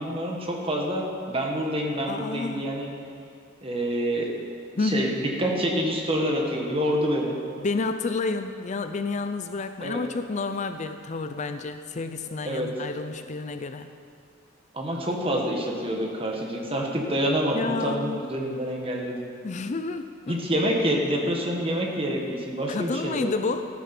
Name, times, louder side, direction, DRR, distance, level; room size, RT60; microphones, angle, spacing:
voice 1, 0.0-2.9 3.6-4.3 4.8-7.4 9.8-10.0 12.4-12.7 14.7-19.2 20.3-23.3, equal, 30° right, 0 dB, 1.7 m, -27 dB
voice 2, 2.1-2.7 4.8-5.2 7.6-13.9 17.5-18.2 19.4-20.4 22.7-23.7, left 3 dB, 35° left, 9 dB, 0.4 m, -30 dB
14.5 x 9.6 x 6.1 m, 2.4 s
head